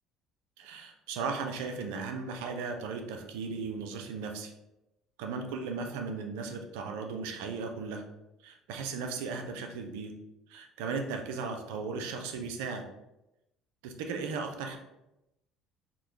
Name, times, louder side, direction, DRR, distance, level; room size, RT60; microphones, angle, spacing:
voice 1, 0.6-4.5 5.2-8.0 8.4-10.1 10.5-12.8 13.8-14.8, right 4 dB, 85° right, 4 dB, 0.5 m, -36 dB
3.7 x 2.2 x 3.0 m, 0.90 s
supercardioid pair, 80°, 0 cm